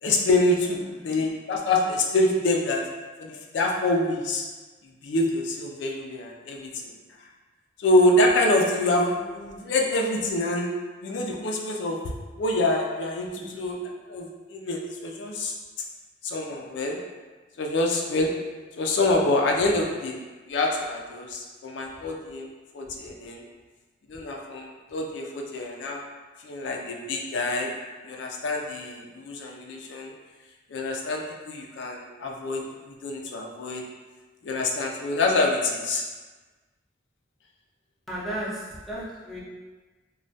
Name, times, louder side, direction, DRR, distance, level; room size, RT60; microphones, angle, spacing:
voice 1, 0.0-2.8 3.2-4.4 5.0-6.9 7.8-10.7 11.0-12.0 12.4-13.8 14.1-15.5 16.2-17.0 17.6-18.3 18.8-20.2 20.5-22.5 22.7-23.4 24.1-26.0 26.4-27.7 28.0-30.1 30.7-32.6 33.0-33.8 34.4-36.0, left 2 dB, 75° left, 0 dB, 0.4 m, -26 dB
voice 2, 38.1-39.4, right 1 dB, ahead, -8 dB, 0.5 m, -35 dB
3.1 x 2.2 x 2.6 m, 1.3 s
head